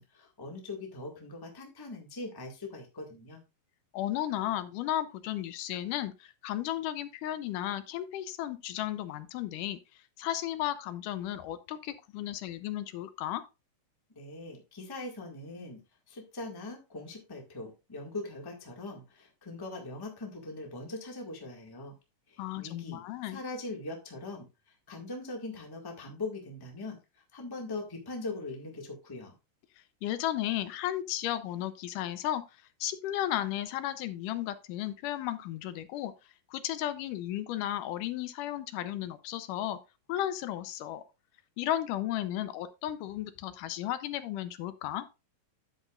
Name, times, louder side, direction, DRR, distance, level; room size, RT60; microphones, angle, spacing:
voice 1, 0.0-3.4 14.1-15.8 16.1-21.9 22.3-29.3, left 2 dB, 15° left, 1 dB, 0.8 m, -41 dB
voice 2, 3.9-9.8 10.2-13.4 22.4-23.4 30.0-32.4 32.8-36.1 36.5-39.8 40.1-41.0 41.6-45.0, left 13 dB, 80° left, 12 dB, 2.1 m, -34 dB
9.8 x 8.0 x 2.4 m, 0.27 s
omnidirectional pair, 3.8 m